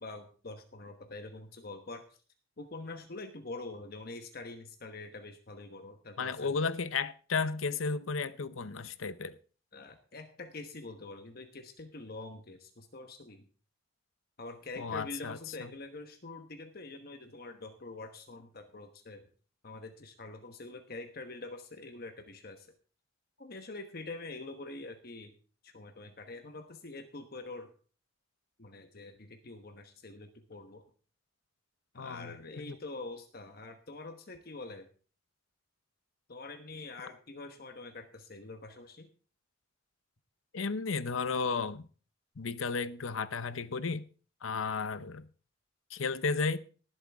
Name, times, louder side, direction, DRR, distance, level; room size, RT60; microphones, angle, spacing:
voice 1, 0.0-2.0 2.6-6.5 9.7-13.5 14.4-19.3 19.6-22.7 23.4-25.3 25.6-27.7 28.6-30.8 31.9-34.9 36.3-39.1, left 2 dB, 50° left, 1.2 m, -45 dB
voice 2, 6.2-9.4 14.8-15.7 32.0-32.8 40.5-41.9 42.4-44.0 44.4-45.3 45.9-46.6, left 4 dB, 90° left, 0.7 m, -33 dB
19.0 x 7.8 x 3.5 m
head